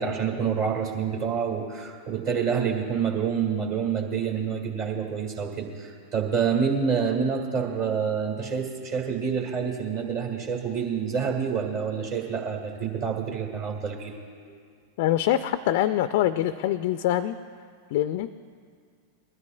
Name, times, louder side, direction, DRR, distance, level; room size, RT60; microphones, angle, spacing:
voice 1, 0.0-14.2, right 6 dB, 45° right, 1 dB, 1.8 m, -27 dB
voice 2, 15.0-17.4 17.9-18.3, left 12 dB, 50° left, 12 dB, 0.4 m, -24 dB
20.5 x 13.5 x 2.2 m, 2.1 s
figure-of-eight pair, 90°, 0 cm